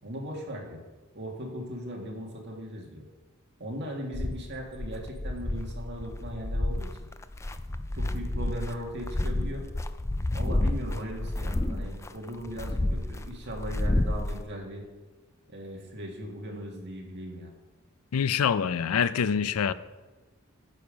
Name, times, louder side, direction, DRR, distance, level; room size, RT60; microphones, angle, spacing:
voice 1, 0.0-0.8 1.1-3.1 3.6-6.9 7.9-9.6 10.3-14.8 15.5-17.5, equal, 55° right, 0 dB, 1.9 m, -38 dB
sound 1, 4.1-14.4, left 1 dB, 15° left, 0.3 m, -30 dB
voice 2, 18.1-19.7, left 7 dB, 80° left, 16 dB, 0.4 m, -25 dB
9.1 x 7.0 x 5.2 m, 1.2 s
head